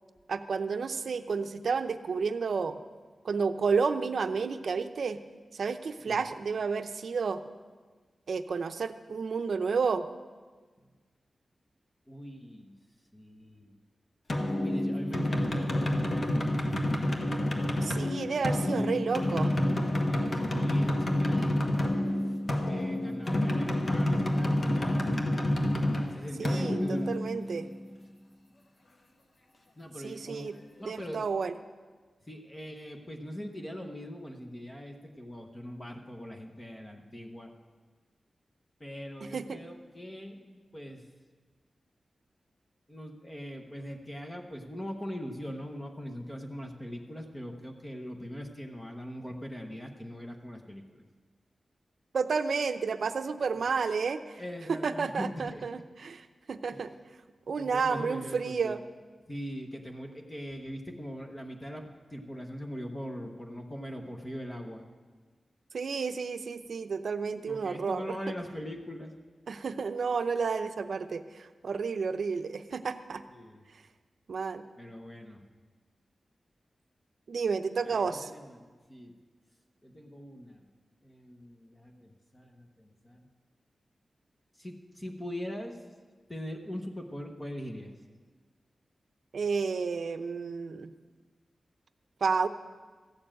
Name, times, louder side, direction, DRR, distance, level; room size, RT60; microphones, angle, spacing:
voice 1, 0.3-2.8 3.2-5.2 5.5-7.4 8.3-10.1 17.8-19.5 26.4-27.7 30.0-30.5 30.8-31.5 39.3-39.6 52.1-54.4 54.7-56.9 57.5-58.8 65.7-68.2 69.5-73.2 74.3-74.6 77.3-78.3 89.3-90.9 92.2-92.5, right 5 dB, 70° right, 10 dB, 0.6 m, -31 dB
voice 2, 12.1-12.8 13.1-13.7 14.6-16.7 18.5-19.0 20.1-22.0 22.6-25.1 26.1-27.1 29.8-31.3 32.3-37.5 38.8-41.1 42.9-51.0 54.4-55.7 56.7-56.9 57.6-58.8 59.3-64.9 67.5-69.1 73.3-73.6 74.8-75.4 77.8-79.1 79.8-80.7 81.0-83.3 84.6-85.8 86.3-87.9, equal, 15° left, 3 dB, 0.9 m, -41 dB
sound 1, 14.3-27.8, left 1 dB, 40° left, 1.2 m, -28 dB
14.5 x 7.0 x 8.8 m, 1.4 s
wide cardioid pair, 170°, 0 cm